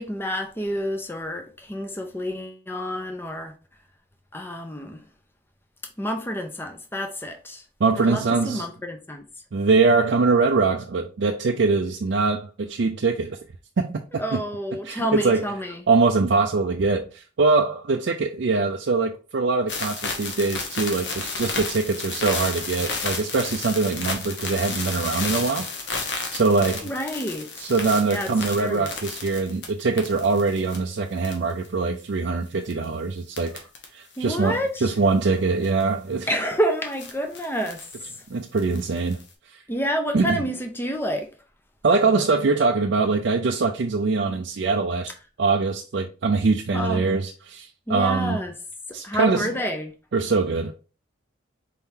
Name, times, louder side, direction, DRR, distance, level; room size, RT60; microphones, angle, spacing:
voice 1, 0.0-3.5 4.3-5.0 6.0-7.6 8.1-9.2 14.2-15.8 26.8-27.7 28.1-28.9 34.2-34.9 36.3-37.9 39.7-41.3 46.7-47.1 47.9-48.5 49.0-49.9, equal, 10° left, 0.6 m, -29 dB
voice 2, 7.8-8.7 9.5-13.4 13.8-14.4 14.8-15.4 15.9-25.7 26.3-26.9 27.6-33.6 33.9-36.3 38.3-39.2 39.5-39.6 40.1-40.4 41.8-45.1 45.4-48.4 48.9-49.5 50.1-50.7, right 4 dB, 60° right, 0.4 m, -23 dB
sound 1, 19.7-30.8 31.2-31.7 32.6-32.8 33.4-33.8 34.1-34.2 35.6-35.8 36.9-37.9 38.6-39.3, left 4 dB, 60° left, 1.0 m, -32 dB
4.5 x 3.6 x 2.7 m
head